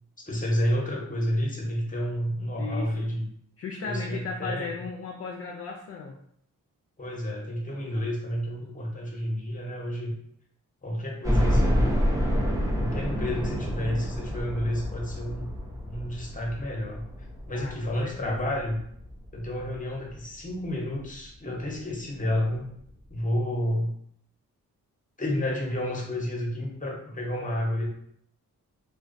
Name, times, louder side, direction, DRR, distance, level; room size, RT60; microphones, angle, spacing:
voice 1, 0.2-3.3 3.8-4.8 7.0-10.1 10.8-11.8 12.8-15.5 15.8-17.0 17.5-18.8 19.3-22.6 23.1-23.9 25.2-27.9, equal, 20° left, -1 dB, 0.8 m, -30 dB
voice 2, 2.6-3.1 3.6-6.2 17.5-18.5, left 4 dB, 45° left, 0 dB, 0.4 m, -36 dB
sound 1, 11.2-20.2 20.6-20.7 21.1-21.2 22.4-22.5 22.8-22.9, equal, 10° right, 0.6 m, -28 dB
2.3 x 2.2 x 2.5 m, 0.68 s
cardioid pair, 50°, 36 cm